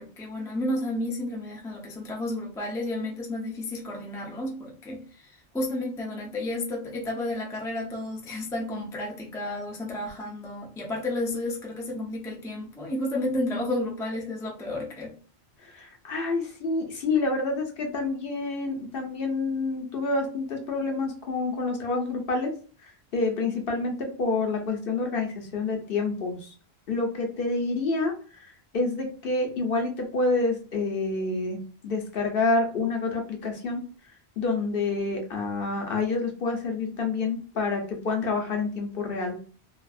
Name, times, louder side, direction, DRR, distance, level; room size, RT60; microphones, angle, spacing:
voice 1, 0.0-15.1, left 1 dB, 5° left, -1 dB, 0.4 m, -32 dB
voice 2, 15.6-22.5 23.1-26.5 26.9-31.6 31.8-33.8 34.4-39.5, left 3 dB, 60° left, 3 dB, 0.9 m, -28 dB
2.7 x 2.4 x 2.3 m, 0.40 s
omnidirectional pair, 1.1 m